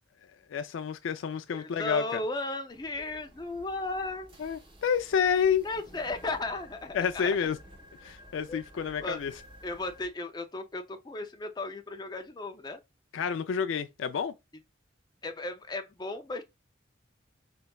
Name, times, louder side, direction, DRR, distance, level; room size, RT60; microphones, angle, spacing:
voice 1, 0.5-2.2 4.4-5.7 6.9-7.6 8.0-9.3 13.1-14.3, left 7 dB, 90° left, 0.4 m, -29 dB
voice 2, 1.5-4.3 5.6-7.4 8.5-8.6 9.0-9.2 9.6-12.8 15.2-16.4, left 2 dB, 20° left, 0.4 m, -35 dB
sound 1, 2.7-10.1, equal, 25° right, 0.9 m, -53 dB
4.1 x 3.3 x 2.3 m
head